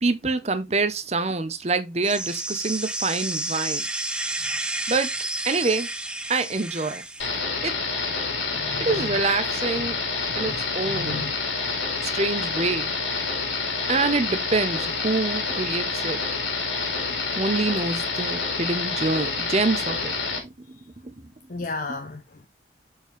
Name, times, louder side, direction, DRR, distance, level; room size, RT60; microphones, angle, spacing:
voice 1, 0.0-3.9 4.9-5.1 5.4-5.9 6.3-7.0 7.6-7.7 8.8-10.0 10.4-11.3 12.0-12.9 13.9-16.2 17.1-20.1 20.4-20.8 21.0-21.1, right 3 dB, 35° right, 0.8 m, -26 dB
sound 1, 2.0-7.3, right 2 dB, 5° right, 0.4 m, -30 dB
sound 2, 7.2-20.4, left 4 dB, 85° left, 2.3 m, -28 dB
voice 2, 8.5-9.1 10.3-10.5 10.8-11.3 20.8-20.9 21.5-22.5, left 3 dB, 45° left, 0.6 m, -34 dB
6.7 x 4.6 x 3.3 m
head